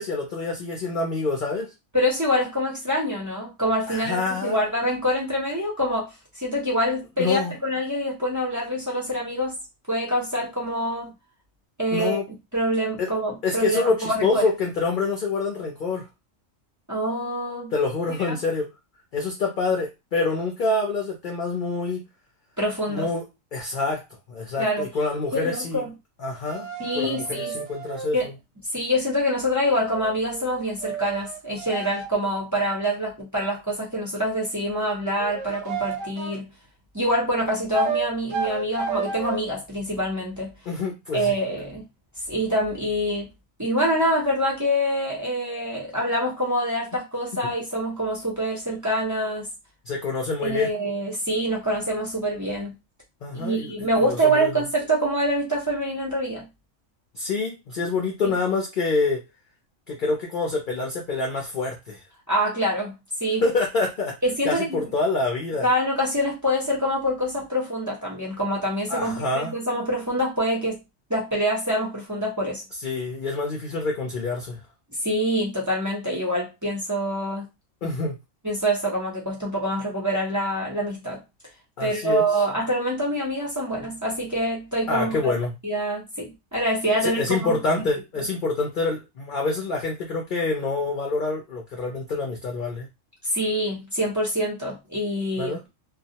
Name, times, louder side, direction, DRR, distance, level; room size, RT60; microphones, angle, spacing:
voice 1, 0.0-1.7 3.9-4.6 7.2-7.5 11.9-12.2 13.0-13.1 13.4-16.1 17.7-18.7 19.1-22.0 22.9-23.2 23.5-24.0 24.3-25.9 26.2-26.7 26.9-28.2 40.7-41.3 49.8-50.7 53.2-54.5 57.1-59.3 59.9-62.0 63.4-64.2 64.4-65.7 68.9-69.5 72.8-74.6 77.8-78.2 81.8-82.3 84.9-85.5 87.0-92.9 95.4-95.6, left 3 dB, 55° left, 0.5 m, -26 dB
voice 2, 1.9-6.1 6.4-9.6 9.9-11.1 11.8-12.2 12.5-14.4 16.9-17.7 18.2-18.4 22.6-23.1 24.6-24.9 25.3-25.9 26.8-27.6 28.1-28.3 28.7-36.5 36.9-40.5 41.1-41.8 42.3-43.3 43.6-49.5 50.4-52.7 53.3-56.5 58.2-58.3 62.3-62.9 63.2-63.4 64.2-64.9 65.6-70.8 71.1-72.6 75.0-77.5 78.4-81.2 81.8-85.2 85.6-87.5 93.2-95.7, equal, 20° right, 0.5 m, -25 dB
sound 1, 26.4-28.1 29.6-32.1 35.0-36.4 37.7-39.4, right 6 dB, 75° right, 0.9 m, -31 dB
2.2 x 2.0 x 2.7 m
omnidirectional pair, 1.4 m